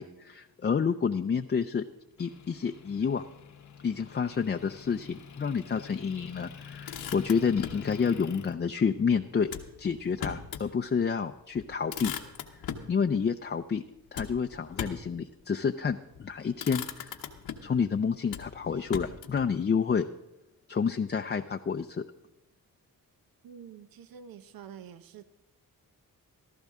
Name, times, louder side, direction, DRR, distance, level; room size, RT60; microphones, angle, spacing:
voice 1, 0.0-1.8 2.2-3.2 3.8-9.5 9.8-12.1 12.9-13.8 14.1-17.2 17.6-20.1 20.7-22.0, left 6 dB, 30° left, 6 dB, 0.5 m, -29 dB
Motor vehicle (road) / Engine, 2.2-8.5, left 7 dB, 55° left, 0.9 m, -47 dB
Motor vehicle (road), 6.6-7.9 9.5-10.7 11.1-11.2 11.5-12.9 14.1-15.1 16.0-16.2 16.6-17.8 18.3-19.5, left 8 dB, 85° left, 1.1 m, -39 dB
voice 2, 23.4-25.2, right 8 dB, 70° right, 11 dB, 0.8 m, -47 dB
15.5 x 13.0 x 3.7 m, 0.94 s
cardioid pair, 65°, 36 cm